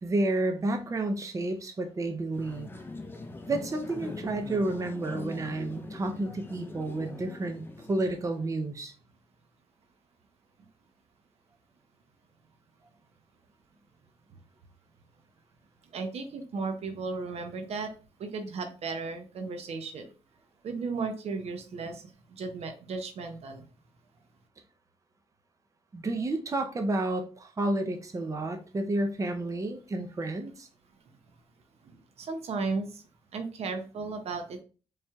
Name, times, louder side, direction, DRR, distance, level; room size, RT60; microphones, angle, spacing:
voice 1, 0.0-2.7 3.5-8.9 25.9-30.7, right 2 dB, 30° right, 6 dB, 0.6 m, -30 dB
sound 1, 2.3-8.7, left 3 dB, 20° left, 0.6 m, -42 dB
voice 2, 15.9-17.9 18.2-20.1 20.6-23.6 32.2-33.0 33.3-34.6, right 4 dB, 70° right, 6 dB, 0.7 m, -35 dB
4.3 x 3.2 x 2.3 m, 0.36 s
cardioid pair, 80°, 11 cm